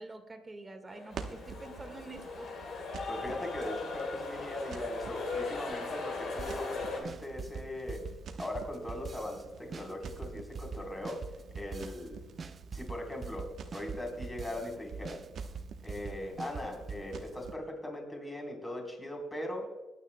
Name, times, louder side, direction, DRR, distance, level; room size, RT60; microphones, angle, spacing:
voice 1, 0.0-2.5, right 2 dB, 25° right, 6 dB, 1.7 m, -47 dB
sound 1, 0.9-7.0, left 4 dB, 65° left, 3.2 m, -39 dB
Crackle, 1.1-17.5, right 5 dB, 65° right, 1.0 m, -49 dB
voice 2, 3.1-8.0 8.4-11.3 11.6-12.2 12.7-15.2 15.8-19.7, left 1 dB, 15° left, 1 dB, 3.7 m, -39 dB
sound 2, 6.4-6.8 7.0-9.4 9.7-12.1 12.4-14.7 15.0-17.0, right 5 dB, 45° right, 0.6 m, -42 dB
21.0 x 9.5 x 2.2 m, 1.1 s
cardioid pair, 90°, 0 cm